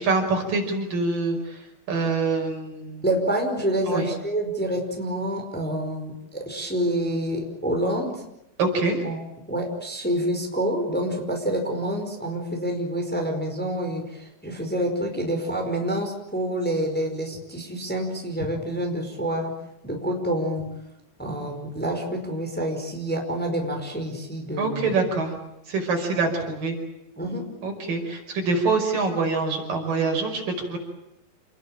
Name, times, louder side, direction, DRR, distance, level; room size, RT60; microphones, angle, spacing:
voice 1, 0.0-1.6 1.9-3.0 3.9-4.0 8.6-9.0 24.6-25.3 25.7-26.8 27.6-30.8, right 3 dB, 65° right, 3 dB, 7.0 m, -25 dB
voice 2, 3.0-8.2 9.0-9.2 9.5-19.5 19.8-20.7 21.2-24.9 27.2-27.5, right 1 dB, ahead, 2 dB, 4.7 m, -27 dB
28.5 x 21.0 x 9.0 m, 0.86 s
omnidirectional pair, 4.3 m